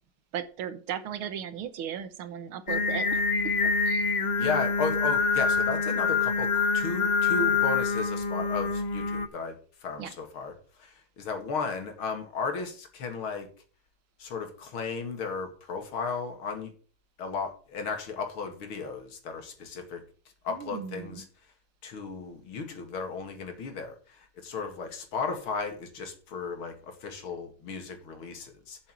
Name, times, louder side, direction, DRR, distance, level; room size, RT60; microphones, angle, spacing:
voice 1, 0.3-3.3 3.6-4.2 10.0-10.1 20.5-21.2, right 9 dB, 80° right, 12 dB, 1.9 m, -37 dB
Singing, 2.7-9.3, left 5 dB, 70° left, 0.4 m, -26 dB
voice 2, 4.4-9.5 9.8-10.5 10.8-13.5 14.2-16.7 17.2-20.0 20.4-21.2 21.8-28.8, left 4 dB, 85° left, 6 dB, 2.8 m, -35 dB
7.6 x 7.3 x 7.4 m, 0.40 s
omnidirectional pair, 2.3 m